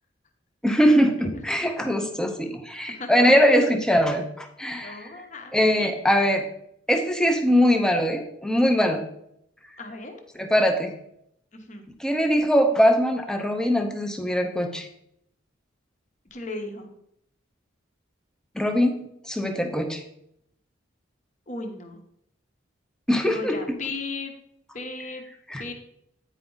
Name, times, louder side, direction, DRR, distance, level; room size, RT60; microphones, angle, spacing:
voice 1, 0.6-5.1 5.5-6.4 6.9-9.0 10.4-10.9 12.0-14.9 18.6-18.9 19.3-20.0 23.1-23.6 25.5-25.6, equal, 5° left, 5 dB, 0.6 m, -21 dB
voice 2, 4.8-5.9 9.8-10.2 11.5-11.9 16.3-16.9 21.5-22.0 23.3-24.3 24.7-25.2 25.6-25.7, left 3 dB, 40° left, 4 dB, 1.0 m, -36 dB
9.2 x 4.8 x 3.9 m, 0.75 s
head